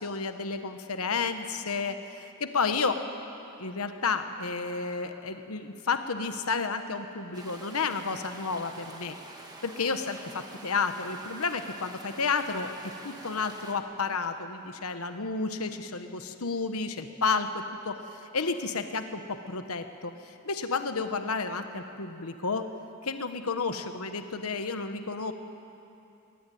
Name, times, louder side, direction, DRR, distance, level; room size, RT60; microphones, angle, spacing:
voice 1, 0.0-3.0 3.6-9.2 9.6-12.7 13.0-18.0 18.3-22.7 23.0-25.3, left 4 dB, 85° left, 8 dB, 1.2 m, -31 dB
sound 1, 7.3-13.8, right 2 dB, 20° right, 2.4 m, -47 dB
22.0 x 20.0 x 9.3 m, 2.8 s
head